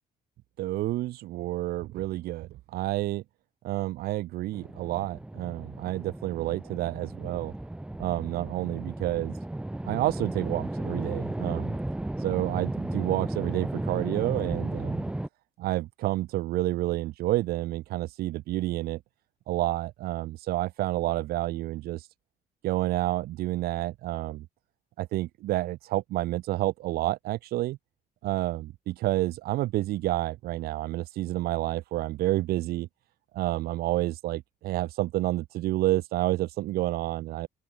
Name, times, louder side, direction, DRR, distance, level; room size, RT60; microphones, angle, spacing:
voice 1, 0.6-3.2 3.6-7.5 8.0-9.4 9.8-11.7 12.2-15.0 15.6-19.0 19.5-22.1 22.6-24.4 25.0-27.8 28.2-32.9 33.3-37.5, right 16 dB, 85° right, 1.5 m, -29 dB
sound 1, 4.5-15.3, right 1 dB, 5° right, 1.3 m, -34 dB
open air
cardioid pair, 165°, 16 cm